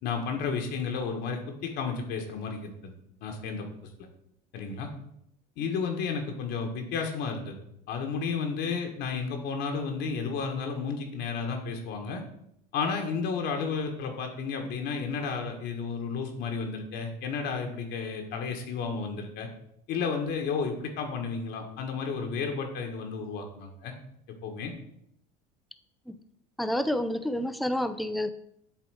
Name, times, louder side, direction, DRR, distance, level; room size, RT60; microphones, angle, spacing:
voice 1, 0.0-2.9 3.2-3.7 4.5-4.9 5.6-7.6 7.9-12.2 12.7-19.5 19.9-23.9 24.4-24.7, left 5 dB, 60° left, 3 dB, 1.3 m, -32 dB
voice 2, 26.6-28.3, left 1 dB, ahead, 9 dB, 0.5 m, -29 dB
8.1 x 3.4 x 4.8 m, 0.73 s
hypercardioid pair, 85°, 20 cm